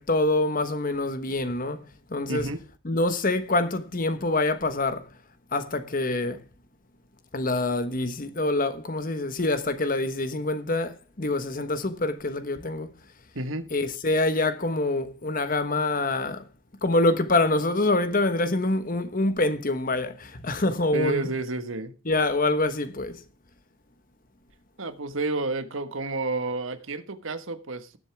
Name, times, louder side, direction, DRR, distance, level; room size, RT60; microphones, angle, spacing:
voice 1, 0.0-1.8 2.1-2.5 2.8-5.1 5.5-6.4 7.3-12.9 13.7-16.4 16.8-21.3 22.1-23.2, left 2 dB, 45° left, 1.2 m, -25 dB
voice 2, 2.3-2.6 13.3-13.7 20.9-21.9 24.8-28.0, right 3 dB, 80° right, 1.5 m, -30 dB
19.0 x 8.0 x 3.5 m
head